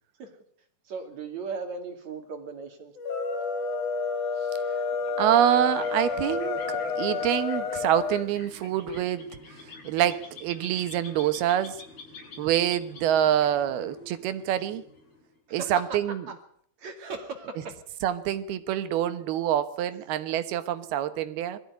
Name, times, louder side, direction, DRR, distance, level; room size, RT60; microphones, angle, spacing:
voice 1, 0.9-2.9 15.5-16.0 16.3-16.4 16.8-17.8, right 4 dB, 50° right, 3.5 m, -37 dB
sound 1, 3.0-8.3, left 5 dB, 55° left, 3.5 m, -30 dB
sound 2, 5.0-15.4, left 3 dB, 80° left, 8.0 m, -48 dB
voice 2, 5.2-9.4 9.8-11.8 12.4-14.8 15.5-16.3 18.0-21.6, right 11 dB, 85° right, 3.2 m, -26 dB
21.5 x 14.5 x 9.6 m
omnidirectional pair, 4.4 m